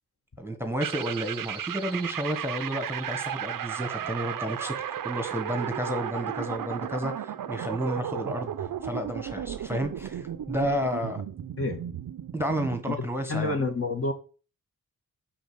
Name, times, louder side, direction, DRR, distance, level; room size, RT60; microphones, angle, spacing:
voice 1, 0.4-4.7 5.0-11.2 12.3-13.6, equal, 5° right, 1.3 m, -31 dB
sound 1, 0.8-12.9, right 9 dB, 65° right, 0.6 m, -34 dB
voice 2, 12.9-14.1, left 2 dB, 40° left, 1.7 m, -29 dB
5.9 x 5.2 x 6.6 m
cardioid pair, 70°, 36 cm